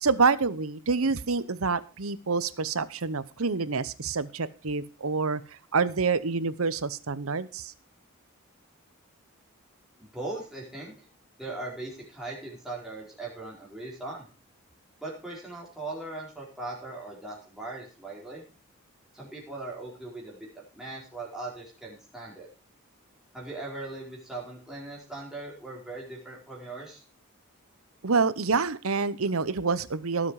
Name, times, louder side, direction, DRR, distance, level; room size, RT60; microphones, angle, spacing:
voice 1, 0.0-5.4 5.7-7.7 28.0-30.3, right 4 dB, 75° right, 16 dB, 0.9 m, -27 dB
voice 2, 10.1-10.9 11.4-14.2 15.0-18.4 19.1-20.5 20.7-22.5 23.3-27.0, right 2 dB, ahead, -5 dB, 4.6 m, -39 dB
18.0 x 7.5 x 4.9 m, 0.36 s
head